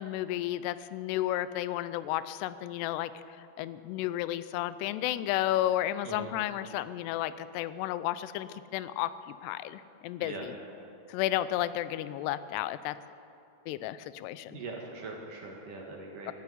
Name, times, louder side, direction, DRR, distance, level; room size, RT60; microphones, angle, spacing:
voice 1, 0.0-3.1 3.4-10.5 11.1-13.0 13.7-14.6 16.3-16.4, left 13 dB, 80° left, 15 dB, 2.5 m, -32 dB
voice 2, 14.5-16.3, right 3 dB, 60° right, 0 dB, 2.6 m, -41 dB
14.5 x 9.5 x 9.6 m, 2.7 s
omnidirectional pair, 5.0 m